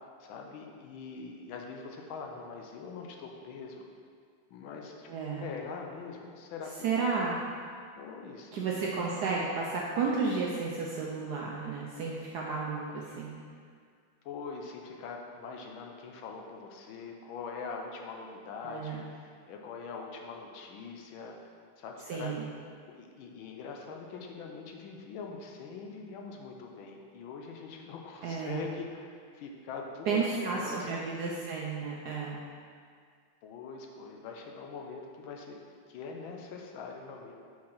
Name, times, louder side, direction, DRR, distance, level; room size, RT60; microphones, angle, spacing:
voice 1, 0.2-3.8 4.5-5.1 5.4-6.9 8.0-8.7 14.2-22.3 22.9-30.9 33.4-37.3, left 4 dB, 75° left, 2 dB, 1.4 m, -43 dB
voice 2, 5.1-5.5 6.8-7.4 8.5-13.3 18.6-19.0 22.1-22.5 28.2-28.7 30.1-32.4, right 4 dB, 75° right, -3 dB, 0.9 m, -32 dB
4.7 x 4.5 x 5.5 m, 2.1 s
omnidirectional pair, 2.3 m